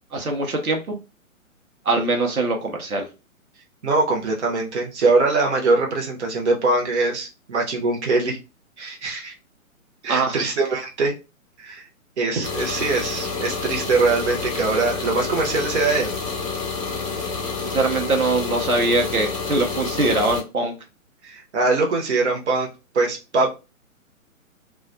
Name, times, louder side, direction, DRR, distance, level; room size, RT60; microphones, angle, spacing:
voice 1, 0.1-1.0 1.8-3.1 10.1-10.4 17.7-20.7, right 2 dB, 90° right, 2 dB, 0.7 m, -22 dB
voice 2, 3.8-8.4 8.8-9.3 10.0-11.1 11.6-11.8 12.2-16.1 21.2-22.7 22.9-23.5, right 3 dB, 55° right, 0 dB, 0.9 m, -22 dB
sound 1, 12.4-20.4, left 4 dB, 25° left, 0.6 m, -28 dB
2.4 x 2.2 x 2.5 m, 0.29 s
figure-of-eight pair, 130°, 42 cm